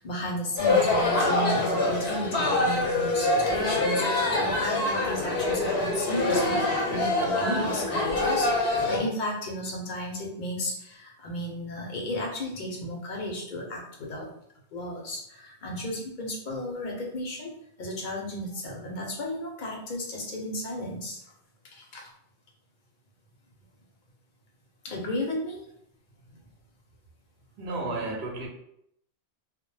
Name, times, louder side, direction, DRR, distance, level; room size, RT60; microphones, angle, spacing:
voice 1, 0.0-14.3 14.7-17.5 17.8-21.2 21.7-22.1 24.8-25.6, left 1 dB, 55° left, 0.7 m, -34 dB
sound 1, 0.6-9.0, left 2 dB, 80° left, 0.9 m, -25 dB
voice 2, 27.6-28.5, right 2 dB, 80° right, 0.8 m, -32 dB
2.1 x 2.0 x 3.1 m
omnidirectional pair, 1.1 m